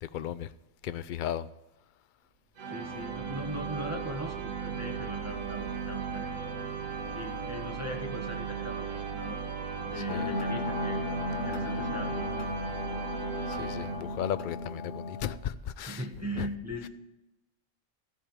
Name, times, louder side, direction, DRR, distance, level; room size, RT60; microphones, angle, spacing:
voice 1, 0.0-0.5 0.8-1.5 10.1-10.3 13.5-16.0 16.4-16.5, left 10 dB, 80° left, 0.4 m, -35 dB
sound 1, 2.6-14.5, right 6 dB, 70° right, 1.6 m, -36 dB
voice 2, 2.7-6.3 7.1-9.4 9.9-12.5 15.9-16.9, equal, 15° right, 1.0 m, -40 dB
sound 2, 10.1-15.4, left 3 dB, 45° left, 0.9 m, -35 dB
14.0 x 5.0 x 8.8 m
omnidirectional pair, 1.4 m